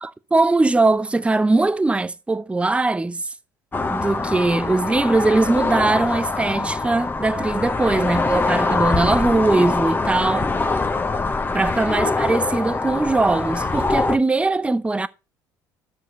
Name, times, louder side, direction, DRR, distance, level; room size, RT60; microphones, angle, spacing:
voice 1, 0.0-3.3 3.9-10.5 11.5-15.1, right 2 dB, 15° right, 0.7 m, -20 dB
sound 1, 3.7-14.2, left 3 dB, 20° left, 1.1 m, -23 dB
11.5 x 6.4 x 5.2 m
hypercardioid pair, 65°, 9 cm